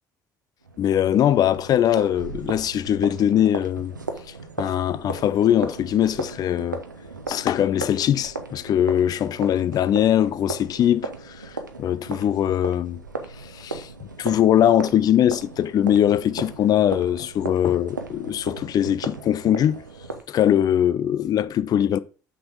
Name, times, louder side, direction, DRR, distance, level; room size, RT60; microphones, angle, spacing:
sound 1, 0.6-20.2, right 3 dB, 85° right, 0.6 m, -36 dB
voice 1, 0.8-3.9 4.6-6.8 7.3-13.0 13.4-19.8 20.3-22.0, left 10 dB, 40° left, 0.4 m, -21 dB
5.9 x 3.8 x 4.7 m
figure-of-eight pair, 55°, 10 cm